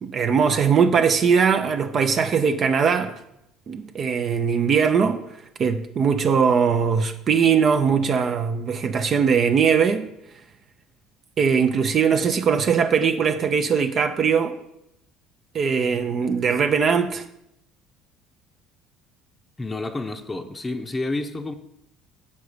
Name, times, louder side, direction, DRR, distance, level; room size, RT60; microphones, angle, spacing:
voice 1, 0.0-3.1 3.7-5.2 5.6-10.1 11.4-14.5 15.5-17.2, right 6 dB, 45° right, 0.6 m, -20 dB
voice 2, 19.6-21.5, left 2 dB, 20° left, 0.7 m, -29 dB
6.9 x 5.4 x 4.9 m
hypercardioid pair, 75°, 0 cm